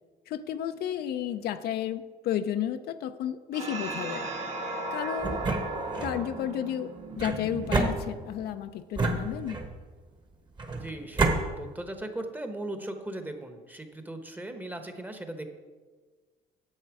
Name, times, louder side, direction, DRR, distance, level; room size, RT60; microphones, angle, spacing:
voice 1, 0.3-4.3 4.9-5.4 6.0-6.9 7.2-9.6, left 10 dB, 70° left, 9 dB, 0.6 m, -32 dB
sound 1, 3.5-8.3, right 2 dB, 40° right, 1.9 m, -36 dB
sound 2, 5.2-6.2 7.2-8.5 9.0-9.8 10.6-11.4, right 3 dB, 25° right, 1.3 m, -29 dB
voice 2, 10.7-15.4, right 1 dB, 10° right, 6 dB, 1.0 m, -38 dB
9.8 x 7.5 x 4.7 m, 1.4 s
cardioid pair, 110°, 17 cm